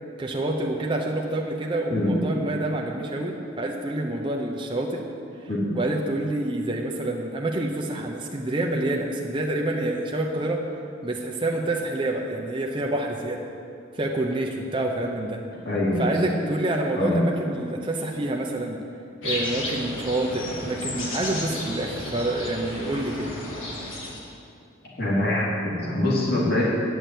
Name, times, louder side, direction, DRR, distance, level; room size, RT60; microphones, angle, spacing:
voice 1, 0.2-5.0 5.7-10.6 11.0-13.4 13.9-15.4 16.0-18.8 19.2-23.3, right 1 dB, 25° right, 0 dB, 0.7 m, -27 dB
voice 2, 15.6-16.3 16.9-17.2 25.0-26.6, left 1 dB, 50° left, -6 dB, 2.7 m, -24 dB
sound 1, 19.2-24.2, left 1 dB, 85° left, 1.8 m, -32 dB
9.3 x 6.2 x 8.3 m, 2.5 s
head